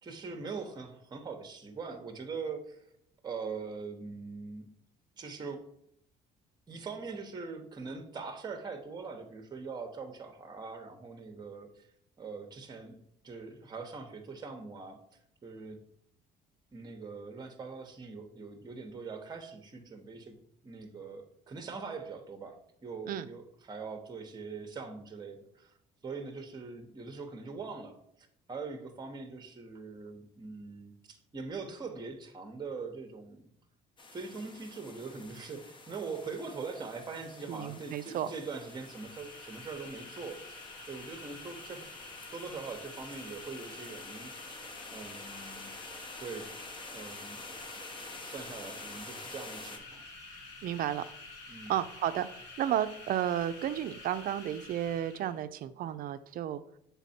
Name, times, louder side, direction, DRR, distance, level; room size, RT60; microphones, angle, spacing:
voice 1, 0.0-2.8 3.2-4.7 5.2-5.7 6.7-11.9 12.2-15.0 15.4-15.8 16.7-20.4 20.6-25.7 26.0-33.5 34.1-41.9 42.3-44.4 44.9-45.7 46.2-46.6 46.9-47.5 48.2-50.0 51.5-51.7, right 4 dB, 25° right, 6 dB, 0.8 m, -42 dB
sound 1, 34.0-49.8, left 3 dB, 30° left, 0.9 m, -48 dB
voice 2, 37.5-38.3 50.6-51.0 51.7-52.3 52.6-56.6, right 11 dB, 60° right, 13 dB, 0.4 m, -32 dB
sound 2, 38.5-55.4, left 2 dB, 90° left, 1.5 m, -49 dB
7.2 x 3.5 x 4.2 m, 0.72 s
cardioid pair, 110°, 17 cm